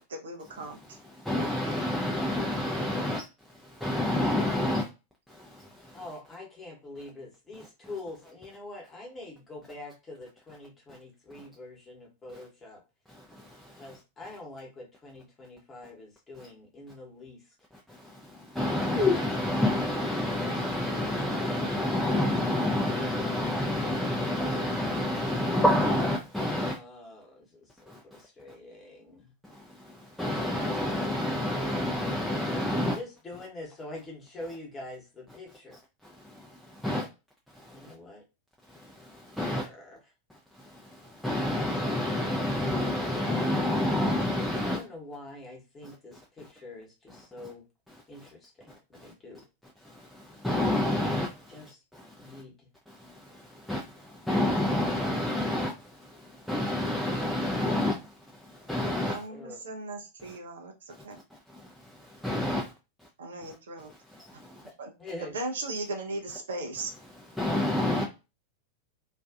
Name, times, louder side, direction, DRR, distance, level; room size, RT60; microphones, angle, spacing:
voice 1, 0.1-1.0 59.1-61.2 63.2-63.9 64.8-64.9 65.2-66.9, right 2 dB, 65° right, 0.5 m, -37 dB
voice 2, 1.1-3.2 3.6-4.9 5.3-6.0 13.1-13.9 17.9-26.8 27.9-28.0 29.4-33.0 36.2-37.1 37.6-37.9 38.7-39.7 40.6-44.8 47.1-47.2 48.2-48.3 49.0-49.1 49.8-52.4 52.9-58.1 58.4-59.2 60.3-60.4 61.5-61.7 62.0-62.7 64.3-64.6 67.4-68.0, left 1 dB, ahead, 0.4 m, -29 dB
voice 3, 5.9-12.8 13.8-17.4 26.5-29.3 32.8-35.8 36.8-37.1 37.7-38.2 39.4-40.0 44.6-47.6 48.1-49.4 51.5-51.8 52.2-52.7 59.3-59.6 65.0-65.3, left 2 dB, 20° left, 1.0 m, -45 dB
2.4 x 2.3 x 2.3 m
figure-of-eight pair, 90°, 0 cm